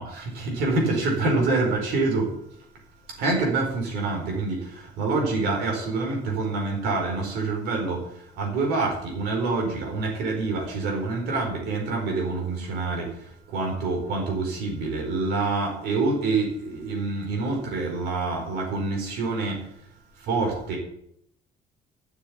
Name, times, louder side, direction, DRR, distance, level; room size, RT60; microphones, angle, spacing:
voice 1, 0.0-2.4 3.2-19.7 20.2-20.8, right 3 dB, 85° right, 1 dB, 4.6 m, -26 dB
9.6 x 7.0 x 8.8 m, 0.74 s
cardioid pair, 115°, 16 cm